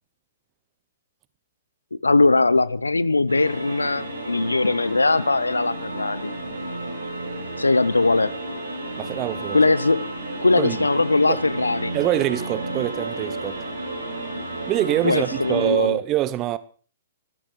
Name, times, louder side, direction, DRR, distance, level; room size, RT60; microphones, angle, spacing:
voice 1, 1.9-6.3 7.6-8.3 9.5-10.0 10.4-11.9 15.0-16.0, left 3 dB, 85° left, 0.7 m, -20 dB
sound 1, 3.3-15.7, right 2 dB, 85° right, 7.5 m, -32 dB
voice 2, 9.0-9.6 10.6-10.8 11.3-11.4 11.9-13.6 14.7-16.6, right 14 dB, 30° right, 0.9 m, -24 dB
25.0 x 13.0 x 3.3 m
figure-of-eight pair, 115°, 0 cm